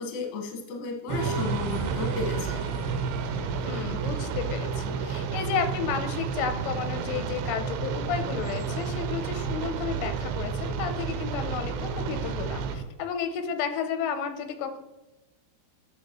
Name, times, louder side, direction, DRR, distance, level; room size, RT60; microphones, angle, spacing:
voice 1, 0.0-2.6, left 4 dB, 60° left, 0 dB, 2.0 m, -33 dB
sound 1, 1.1-12.8, right 5 dB, 65° right, 2.6 m, -32 dB
sound 2, 1.2-12.8, right 7 dB, 80° right, 2.6 m, -36 dB
voice 2, 3.6-14.8, left 7 dB, 90° left, 7 dB, 3.2 m, -32 dB
9.6 x 6.3 x 3.1 m, 1.1 s
omnidirectional pair, 5.6 m